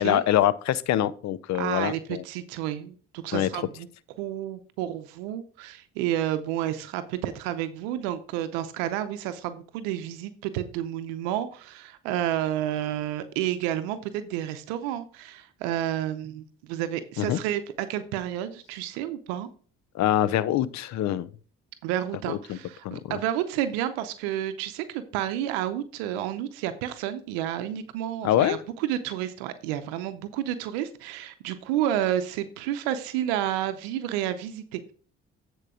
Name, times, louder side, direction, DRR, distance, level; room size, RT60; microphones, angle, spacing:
voice 1, 0.0-2.2 3.3-3.5 17.2-17.4 19.9-21.3 22.3-22.6 22.8-23.0 28.2-28.6, left 12 dB, 65° left, 0.6 m, -24 dB
voice 2, 1.6-3.9 4.2-19.5 21.8-34.9, right 11 dB, 85° right, 0.7 m, -30 dB
8.9 x 4.6 x 4.9 m
hypercardioid pair, 55°, 30 cm